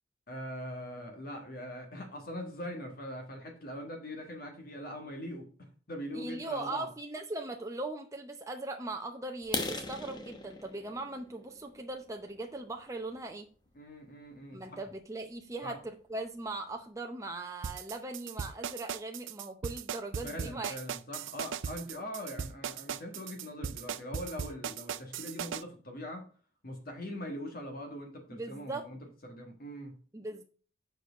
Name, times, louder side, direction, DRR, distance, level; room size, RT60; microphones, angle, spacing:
voice 1, 0.3-6.9 13.7-14.8 15.6-15.8 20.2-26.3 26.6-30.0, equal, 45° left, 3 dB, 1.6 m, -42 dB
voice 2, 6.1-13.5 14.5-15.8 16.1-20.8 28.3-28.9 30.1-30.4, right 2 dB, 15° right, 3 dB, 0.6 m, -39 dB
sound 1, 9.4-13.2 13.7-13.9 14.4-14.5 14.9-15.0 15.4-15.5 15.9-16.0 16.2-16.7, left 3 dB, 20° left, 0.9 m, -40 dB
sound 2, 17.6-25.6, right 7 dB, 75° right, 0.5 m, -38 dB
7.2 x 4.7 x 5.1 m, 0.41 s
head